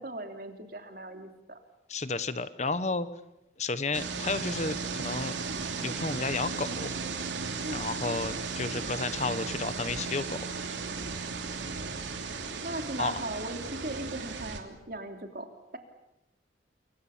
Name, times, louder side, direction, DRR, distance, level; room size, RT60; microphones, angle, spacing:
voice 1, 0.0-1.6 7.6-7.8 12.6-15.5, right 1 dB, 55° right, 5 dB, 3.2 m, -38 dB
voice 2, 1.9-3.1 3.6-5.4 5.8-6.9 7.7-10.4 13.0-13.2, left 3 dB, 40° left, 13 dB, 1.0 m, -32 dB
sound 1, 3.9-14.6, right 4 dB, 90° right, 3.1 m, -35 dB
28.0 x 23.5 x 7.2 m, 0.88 s
head